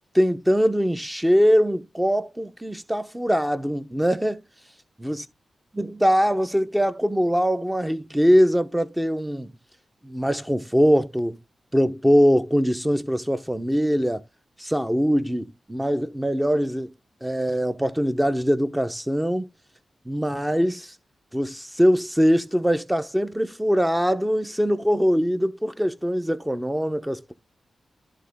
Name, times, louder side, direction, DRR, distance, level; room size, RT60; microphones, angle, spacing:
voice 1, 0.1-4.4 5.0-5.2 5.8-9.6 10.0-11.4 11.7-14.2 14.6-16.9 17.2-19.5 20.1-20.9 21.3-27.3, equal, 10° right, 0.8 m, -22 dB
11.0 x 3.8 x 3.5 m
cardioid pair, 55°, 0 cm